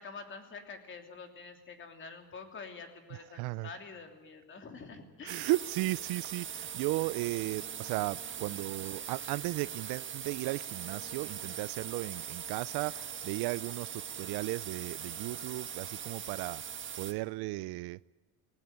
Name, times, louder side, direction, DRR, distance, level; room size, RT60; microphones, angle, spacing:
voice 1, 0.0-5.5, left 4 dB, 30° left, 3.1 m, -47 dB
voice 2, 3.3-3.7 5.2-18.0, right 20 dB, 75° right, 0.6 m, -35 dB
sound 1, 5.3-17.1, right 8 dB, 30° right, 1.4 m, -41 dB
19.5 x 18.5 x 9.5 m
cardioid pair, 155°, 38 cm